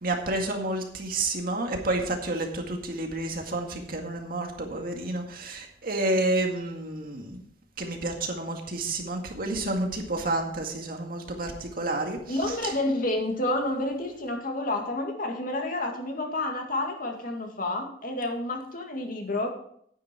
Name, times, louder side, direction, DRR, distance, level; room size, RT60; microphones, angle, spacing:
voice 1, 0.0-7.4 7.8-12.2 12.5-12.6, right 2 dB, 55° right, 3 dB, 2.0 m, -30 dB
voice 2, 12.3-19.5, left 2 dB, 55° left, 2 dB, 2.2 m, -29 dB
10.0 x 9.7 x 4.5 m, 0.66 s
head